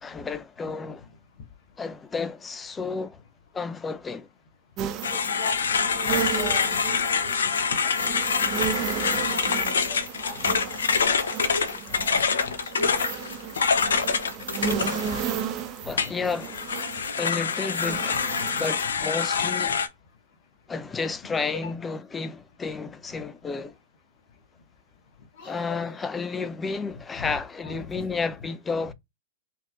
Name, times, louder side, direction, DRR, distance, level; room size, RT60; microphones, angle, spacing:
voice 1, 0.0-1.0 1.8-3.2 3.5-4.3 15.8-16.6 17.2-18.2 18.6-19.8 20.7-23.8 25.4-28.9, left 4 dB, 15° left, 0.4 m, -31 dB
sound 1, 4.8-18.9, right 8 dB, 35° right, 0.6 m, -34 dB
sound 2, 5.0-15.5 16.0-19.9, left 5 dB, 85° left, 0.5 m, -26 dB
voice 2, 5.1-7.7 8.5-8.9 9.2-11.3 11.6-12.6 12.8-13.4 18.1-18.6 19.3-19.5 21.5-21.7 25.4-25.9 27.2-27.4 27.6-28.2, left 5 dB, 60° left, 1.2 m, -40 dB
4.5 x 2.8 x 2.3 m
hypercardioid pair, 120°, 0 cm